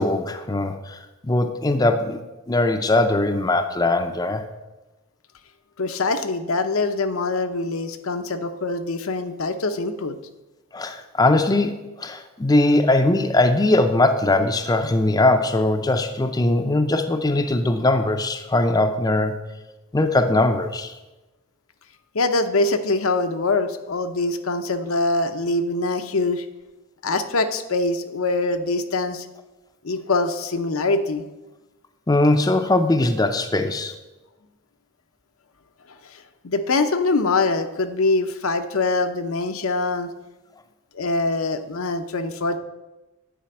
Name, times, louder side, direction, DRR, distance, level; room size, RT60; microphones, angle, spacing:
voice 1, 0.0-2.2 2.5-4.4 10.7-19.4 19.9-20.9 32.1-33.9, left 2 dB, 15° left, 7 dB, 0.5 m, -20 dB
voice 2, 5.8-10.2 22.1-26.5 27.0-29.3 29.8-31.2 35.9-40.1 40.9-42.6, left 3 dB, 75° left, 8 dB, 0.8 m, -24 dB
10.5 x 5.1 x 7.7 m, 1.1 s
head